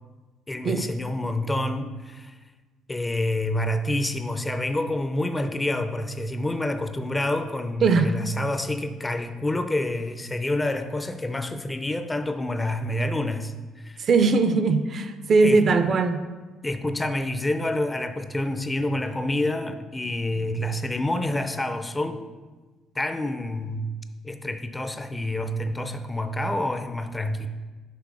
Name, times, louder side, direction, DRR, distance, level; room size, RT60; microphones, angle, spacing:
voice 1, 0.5-2.4 2.9-14.1 15.4-15.6 15.9-16.0 16.6-22.2 23.0-23.9 24.2-27.5, left 1 dB, 15° left, 0.4 m, -28 dB
voice 2, 7.8-8.1 14.0-16.2, right 4 dB, 50° right, 0.4 m, -20 dB
5.9 x 3.4 x 4.8 m
cardioid pair, 100°, 0 cm